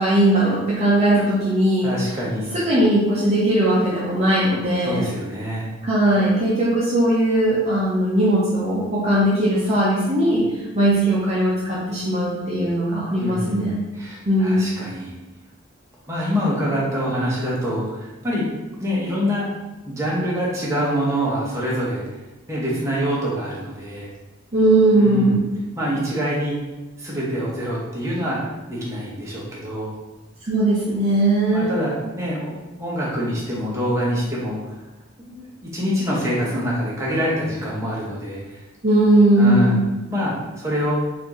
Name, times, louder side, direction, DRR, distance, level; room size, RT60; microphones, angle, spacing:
voice 1, 0.0-1.9 2.5-5.0 5.8-10.5 10.7-13.8 14.3-14.7 24.5-25.4 30.4-31.8 38.8-39.8, right 1 dB, 35° right, -7 dB, 0.6 m, -19 dB
voice 2, 1.8-2.6 4.8-5.7 13.2-15.2 16.1-18.5 18.8-19.5 19.8-22.1 22.5-24.1 24.9-25.4 25.8-26.6 27.0-28.4 28.7-29.9 31.5-34.8 35.2-38.6 39.3-39.8 40.1-41.0, equal, 15° right, -6 dB, 0.9 m, -25 dB
4.2 x 2.6 x 3.0 m, 1.1 s
head